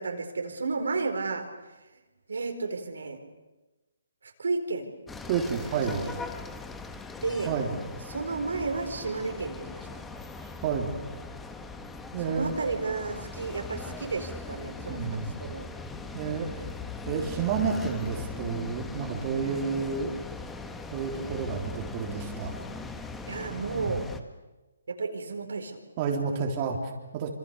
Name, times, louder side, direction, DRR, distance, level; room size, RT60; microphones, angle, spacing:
voice 1, 0.0-1.4 2.3-3.2 4.2-4.9 5.6-6.1 7.2-7.5 8.1-9.9 12.2-15.7 19.4-19.6 23.3-24.1 24.9-25.8 26.4-26.5, right 4 dB, 75° right, 5 dB, 4.5 m, -32 dB
sound 1, 5.1-24.2, left 3 dB, 5° left, 1.5 m, -40 dB
voice 2, 5.3-6.1 7.5-7.8 10.6-11.0 12.1-12.6 14.9-15.3 16.1-16.7 17.1-20.1 20.9-22.5 23.8-24.0 26.0-27.3, right 6 dB, 30° right, 1 dB, 3.4 m, -30 dB
26.5 x 26.5 x 6.9 m, 1.1 s
hypercardioid pair, 150°, 0 cm